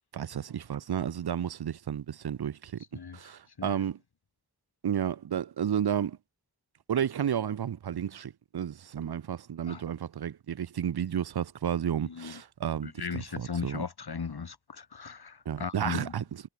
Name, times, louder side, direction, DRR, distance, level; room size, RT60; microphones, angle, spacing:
voice 1, 0.1-2.8 3.1-4.0 4.8-6.2 6.9-13.8 15.5-16.2, right 9 dB, 80° right, 0.6 m, -32 dB
voice 2, 12.0-12.4 12.8-16.2, left 5 dB, 80° left, 1.5 m, -37 dB
wide cardioid pair, 50°, 38 cm